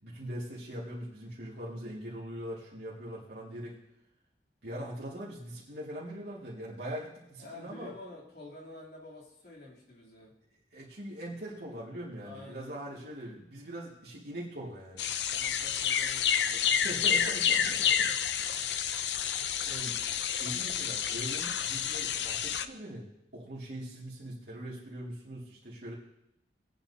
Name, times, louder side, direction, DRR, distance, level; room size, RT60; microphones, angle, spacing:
voice 1, 0.0-3.7 4.6-7.9 10.7-15.1 16.5-17.7 19.7-23.1 23.3-25.9, right 1 dB, 70° right, -7 dB, 2.2 m, -41 dB
voice 2, 7.4-10.3 12.2-12.7 15.3-17.1 17.6-18.2, left 2 dB, 65° left, -4 dB, 3.2 m, -49 dB
sound 1, 15.0-22.7, left 8 dB, 80° left, 0.6 m, -29 dB
20.5 x 8.9 x 2.8 m, 0.83 s
head